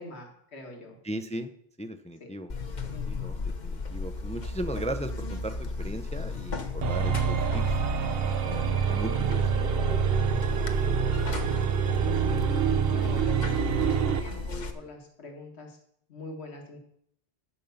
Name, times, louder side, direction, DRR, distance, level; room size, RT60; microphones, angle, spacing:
voice 1, 0.0-1.0 2.9-3.3 12.9-15.8 16.1-16.8, left 2 dB, 70° left, 1 dB, 2.0 m, -43 dB
voice 2, 1.0-1.5 1.8-2.5 3.0-7.8 8.4-10.1 10.5-12.5, right 1 dB, 10° left, 8 dB, 0.5 m, -38 dB
Buzz, 2.5-14.7, left 3 dB, 45° left, 1.0 m, -35 dB
sound 1, 6.8-14.3, right 7 dB, 60° right, 0.9 m, -26 dB
12.5 x 5.4 x 7.1 m, 0.71 s
omnidirectional pair, 1.2 m